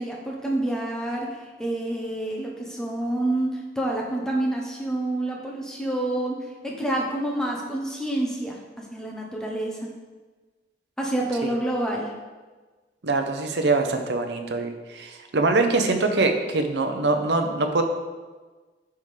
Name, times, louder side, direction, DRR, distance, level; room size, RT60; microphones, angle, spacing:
voice 1, 0.0-9.9 11.0-12.1, right 1 dB, 5° left, -2 dB, 0.8 m, -28 dB
voice 2, 13.0-17.8, right 3 dB, 75° right, 5 dB, 0.7 m, -23 dB
10.5 x 3.6 x 3.2 m, 1.3 s
head